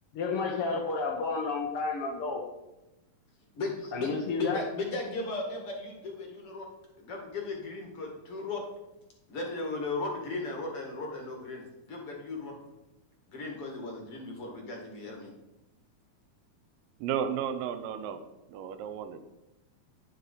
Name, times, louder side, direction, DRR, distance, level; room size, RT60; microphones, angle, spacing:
voice 1, 0.1-2.5 3.9-4.6, left 4 dB, 75° left, 1 dB, 1.2 m, -31 dB
voice 2, 3.6-4.1 4.4-6.7 7.0-8.6 9.3-12.5 13.3-15.3, left 3 dB, 45° left, 1 dB, 2.5 m, -36 dB
voice 3, 17.0-18.2 18.5-19.2, right 8 dB, 75° right, 10 dB, 2.5 m, -33 dB
11.0 x 7.7 x 4.9 m, 0.95 s
omnidirectional pair, 4.2 m